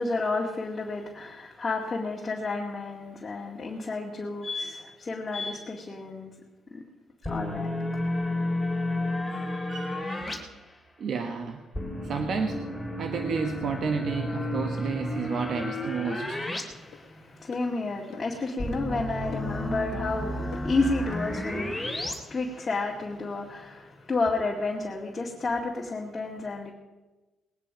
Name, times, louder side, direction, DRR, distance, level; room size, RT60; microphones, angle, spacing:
voice 1, 0.0-6.3 6.7-6.8 7.3-7.7 16.7-26.7, left 3 dB, 30° left, 2.2 m, -31 dB
sound 1, 7.2-10.4 11.7-16.6 16.9-17.0 18.6-22.1, left 1 dB, 5° left, 3.0 m, -31 dB
voice 2, 9.7-10.6 11.0-11.6 12.0-12.6 13.0-16.4, right 5 dB, 60° right, 1.3 m, -31 dB
sound 2, 16.9-17.0 17.5-17.7 18.1-18.4 18.7-18.9 19.3-19.6 19.9-20.1 20.5-20.8 21.1-21.3, left 8 dB, 80° left, 1.0 m, -44 dB
20.0 x 9.9 x 5.1 m
cardioid pair, 90°, 0 cm